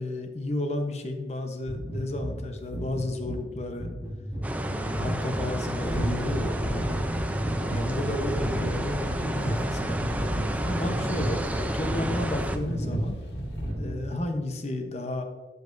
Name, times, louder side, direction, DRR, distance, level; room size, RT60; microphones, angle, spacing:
voice 1, 0.0-3.9 4.6-6.9 7.7-10.2 10.6-13.2 13.8-15.2, left 1 dB, 40° left, 5 dB, 0.9 m, -32 dB
sound 1, 1.7-14.3, equal, 25° right, 2.3 m, -36 dB
sound 2, 4.4-12.6, right 1 dB, 10° right, 0.4 m, -31 dB
sound 3, 5.8-13.7, right 1 dB, 80° left, 1.5 m, -32 dB
12.5 x 5.3 x 2.6 m, 1.4 s
head